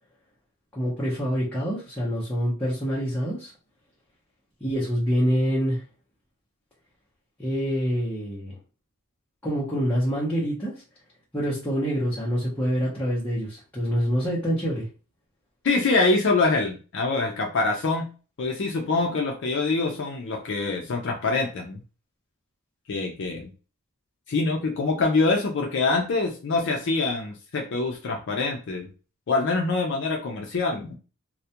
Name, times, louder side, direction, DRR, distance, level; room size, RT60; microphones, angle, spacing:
voice 1, 0.7-3.5 4.6-5.8 7.4-8.6 9.4-10.7 11.3-14.9, equal, 10° left, -8 dB, 0.6 m, -26 dB
voice 2, 15.6-18.1 18.4-21.8 22.9-23.5 24.3-28.9 29.3-31.0, left 3 dB, 55° left, 1 dB, 0.4 m, -25 dB
2.3 x 2.1 x 2.7 m, 0.35 s
head